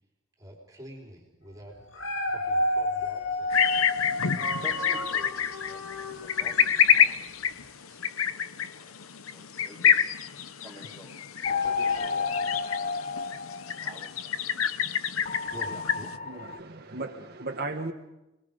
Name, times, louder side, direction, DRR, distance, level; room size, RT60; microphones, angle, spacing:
voice 1, 0.4-4.0 15.5-16.1, equal, 15° right, 3.7 m, -47 dB
Dog, 1.8-7.1 7.6-7.7, left 1 dB, 65° left, 2.2 m, -31 dB
sound 1, 3.5-16.2, left 8 dB, 85° left, 0.9 m, -27 dB
voice 2, 4.1-7.2 7.5-9.0 9.3-10.1 10.6-11.2 11.6-12.3 13.8-14.8 15.6-15.8 16.2-16.4, equal, 15° left, 7.4 m, -50 dB
sound 2, 11.4-14.0 15.2-16.6, left 5 dB, 35° left, 0.7 m, -31 dB
voice 3, 16.2-17.9, right 3 dB, 50° right, 1.5 m, -36 dB
29.5 x 20.5 x 5.3 m
head